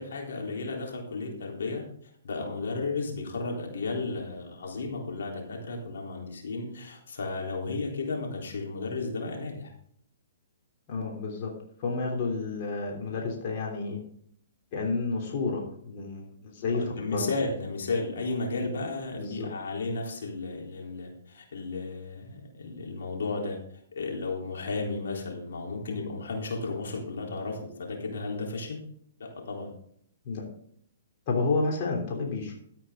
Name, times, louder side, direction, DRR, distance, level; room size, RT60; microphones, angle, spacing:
voice 1, 0.0-1.8 2.2-9.7 16.7-23.6 24.0-28.8 29.2-29.7, left 3 dB, 70° left, -1 dB, 3.6 m, -33 dB
voice 2, 10.9-11.5 11.8-14.0 14.7-17.3 19.2-19.5 30.2-30.5 31.3-32.5, left 3 dB, 45° left, -1 dB, 3.3 m, -30 dB
13.5 x 8.8 x 3.8 m, 0.65 s
hypercardioid pair, 130°, 0 cm